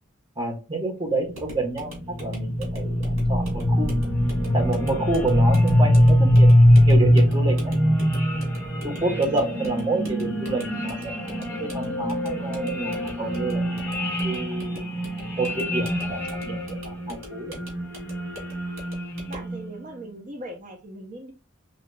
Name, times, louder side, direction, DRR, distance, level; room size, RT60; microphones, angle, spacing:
voice 1, 0.4-4.0 4.5-6.5 6.9-7.7 8.8-14.0 14.2-14.8 15.4-17.6, right 2 dB, 25° right, 1 dB, 1.1 m, -29 dB
sound 1, 1.4-19.8, equal, 15° left, 1.7 m, -22 dB
sound 2, 1.4-19.6, equal, 90° right, 2.2 m, -44 dB
voice 2, 19.3-21.3, right 1 dB, 40° right, 2 dB, 0.7 m, -40 dB
5.2 x 2.9 x 2.2 m, 0.29 s
head